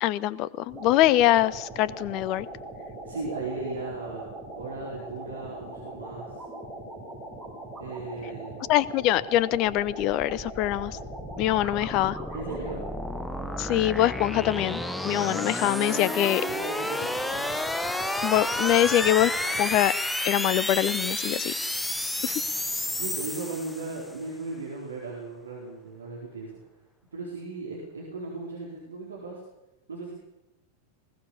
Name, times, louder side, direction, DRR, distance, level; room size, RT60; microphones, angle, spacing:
voice 1, 0.0-2.5 8.7-11.0 11.4-12.2 13.6-16.4 18.2-19.3 19.6-19.9 20.2-21.5 22.2-22.4, left 14 dB, 40° left, 19 dB, 0.9 m, -24 dB
sound 1, 0.7-19.9, right 2 dB, 20° right, 7.2 m, -41 dB
voice 2, 3.1-4.3 4.6-6.4 7.8-8.7 12.3-12.9 15.9-17.5 23.0-26.6 27.1-29.4 29.9-30.1, right 3 dB, 70° right, -2 dB, 4.5 m, -37 dB
sound 2, 9.7-24.1, left 1 dB, 5° left, 1.2 m, -31 dB
20.5 x 18.0 x 7.1 m, 0.94 s
figure-of-eight pair, 90°, 0 cm